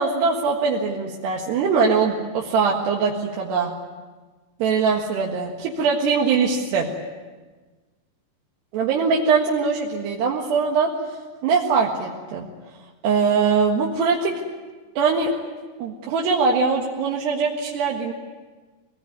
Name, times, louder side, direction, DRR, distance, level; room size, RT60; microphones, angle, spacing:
voice 1, 0.0-3.7 4.6-6.9 8.7-10.9 11.4-12.5 13.0-14.4 15.0-15.3 15.8-18.1, right 5 dB, 70° right, -2 dB, 3.7 m, -22 dB
24.5 x 19.5 x 9.6 m, 1.3 s
omnidirectional pair, 5.2 m